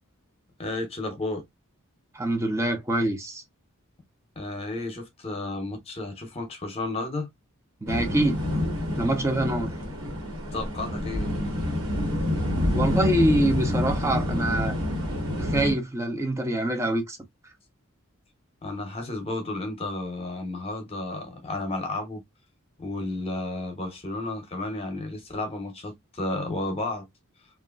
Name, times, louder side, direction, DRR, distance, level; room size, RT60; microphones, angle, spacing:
voice 1, 0.6-1.4 4.4-7.3 9.4-9.7 10.5-11.3 18.6-22.2 22.8-27.1, left 2 dB, 25° left, 0.8 m, -32 dB
voice 2, 2.1-3.4 7.8-8.4 9.0-9.7 12.7-14.8 15.4-17.2, right 1 dB, 15° right, 0.5 m, -25 dB
sound 1, 7.9-15.7, left 1 dB, 70° right, 1.4 m, -27 dB
2.8 x 2.4 x 2.4 m
head